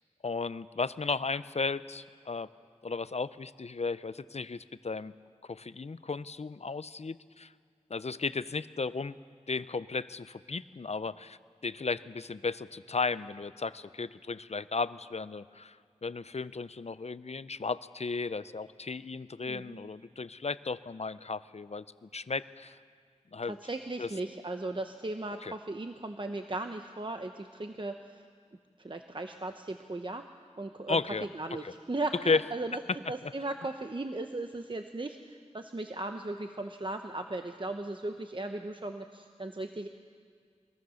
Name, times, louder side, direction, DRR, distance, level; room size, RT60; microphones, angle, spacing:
voice 1, 0.2-2.5 2.8-5.1 5.4-7.5 7.9-9.2 9.5-15.8 16.0-22.8 23.3-23.6 24.0-24.1 25.4-25.6 30.9-31.3 31.6-31.7 32.1-32.4 33.2-33.3, left 4 dB, 60° left, 15 dB, 0.6 m, -34 dB
voice 2, 19.4-19.9 23.5-28.2 28.8-30.3 30.6-31.0 31.3-39.9, right 2 dB, 40° right, 6 dB, 0.9 m, -37 dB
22.5 x 22.0 x 6.4 m, 2.1 s
wide cardioid pair, 45°, 12 cm